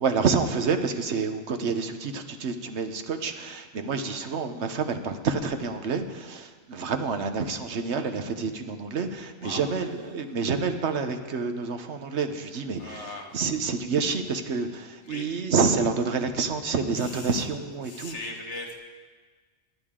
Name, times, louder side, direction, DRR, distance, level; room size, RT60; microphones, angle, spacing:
voice 1, 0.0-18.2, right 5 dB, 80° right, 7 dB, 1.2 m, -28 dB
voice 2, 12.8-13.3 15.0-15.3 17.0-17.3 17.8-18.8, left 2 dB, 80° left, 1 dB, 1.9 m, -38 dB
20.5 x 10.5 x 3.7 m, 1.4 s
omnidirectional pair, 1.2 m